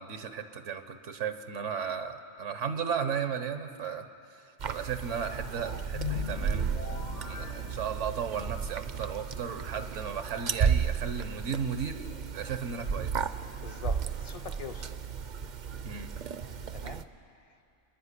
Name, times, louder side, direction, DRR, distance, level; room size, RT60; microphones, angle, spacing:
voice 1, 0.0-6.7 7.2-13.2 15.8-16.1, right 7 dB, 75° right, 9 dB, 1.3 m, -35 dB
sound 1, 4.6-17.0, right 6 dB, 50° right, 0.6 m, -34 dB
sound 2, 5.9-8.5, left 5 dB, 70° left, 1.5 m, -38 dB
voice 2, 13.5-14.9 16.7-17.6, left 5 dB, 40° left, 10 dB, 0.6 m, -44 dB
29.0 x 10.5 x 9.9 m, 2.6 s
omnidirectional pair, 1.3 m